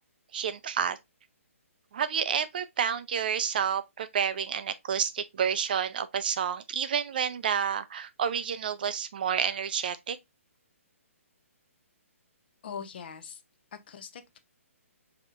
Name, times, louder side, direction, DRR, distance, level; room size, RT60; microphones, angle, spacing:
voice 1, 0.3-1.0 1.9-10.2, right 8 dB, 40° right, 0.4 m, -29 dB
voice 2, 12.6-13.4 13.7-14.4, left 7 dB, 40° left, 0.6 m, -42 dB
5.3 x 2.8 x 2.4 m
hypercardioid pair, 165°, 8 cm